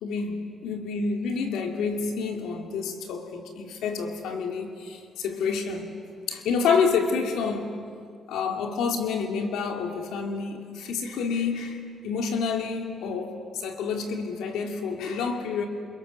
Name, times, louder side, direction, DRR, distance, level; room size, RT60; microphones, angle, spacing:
voice 1, 0.0-5.9 6.3-7.7 8.3-13.4 13.6-15.7, left 5 dB, 85° left, 2.5 m, -28 dB
28.0 x 28.0 x 6.7 m
cardioid pair, 90°, 0 cm